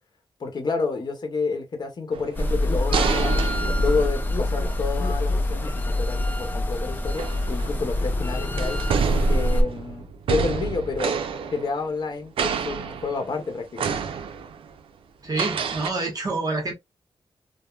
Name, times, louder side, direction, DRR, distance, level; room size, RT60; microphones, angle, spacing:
voice 1, 0.4-3.5 3.8-8.8 9.3-11.2 11.5-14.0, left 4 dB, 50° left, 0.8 m, -29 dB
sound 1, 2.1-4.6 6.1-6.3 7.0-8.0 8.6-12.1 12.4-13.4 13.8-14.7 15.3-15.9, right 6 dB, 90° right, 0.4 m, -29 dB
sound 2, 2.3-9.6, left 1 dB, 20° left, 0.4 m, -24 dB
voice 2, 15.2-16.7, right 3 dB, 45° right, 1.0 m, -27 dB
3.1 x 2.0 x 2.2 m
wide cardioid pair, 120°, 9 cm